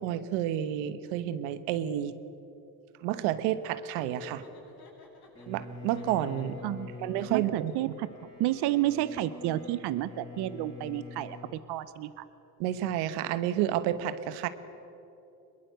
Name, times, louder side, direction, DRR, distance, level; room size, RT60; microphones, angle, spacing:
voice 1, 0.0-2.1 3.0-4.4 5.5-6.6 7.0-7.9 12.6-14.5, right 12 dB, 90° right, 13 dB, 1.1 m, -30 dB
Laughter, 4.0-5.5 5.9-6.8, left 2 dB, 60° left, 7.8 m, -52 dB
Bowed string instrument, 5.3-11.6, left 4 dB, 10° left, 6.2 m, -45 dB
voice 2, 7.3-8.1 8.4-12.3, right 14 dB, 65° right, 14 dB, 0.8 m, -31 dB
22.0 x 21.0 x 8.0 m, 2.9 s
supercardioid pair, 70°, 43 cm